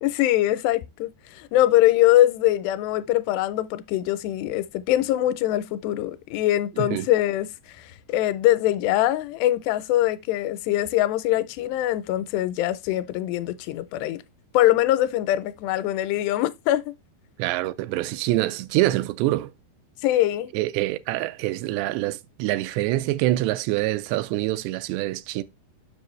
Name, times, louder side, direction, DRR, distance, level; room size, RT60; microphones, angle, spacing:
voice 1, 0.0-7.5 7.7-14.2 14.5-16.9 20.0-20.5, left 14 dB, 85° left, 2.7 m, -23 dB
voice 2, 17.4-19.5 20.5-25.4, right 16 dB, 90° right, 2.7 m, -25 dB
7.7 x 5.9 x 3.1 m
omnidirectional pair, 4.8 m